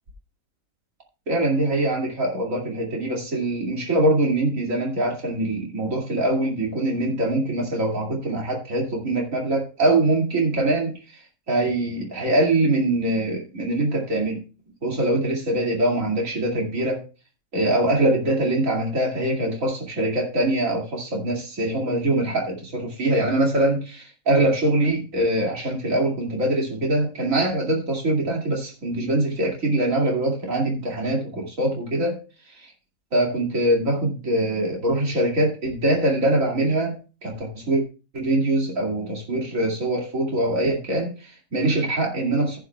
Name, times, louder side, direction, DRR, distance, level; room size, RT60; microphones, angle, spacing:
voice 1, 1.3-14.4 14.8-17.0 17.5-32.7 33.1-37.8 38.1-42.6, right 1 dB, 70° right, -1 dB, 2.7 m, -23 dB
15.5 x 9.0 x 2.3 m, 0.32 s
omnidirectional pair, 1.4 m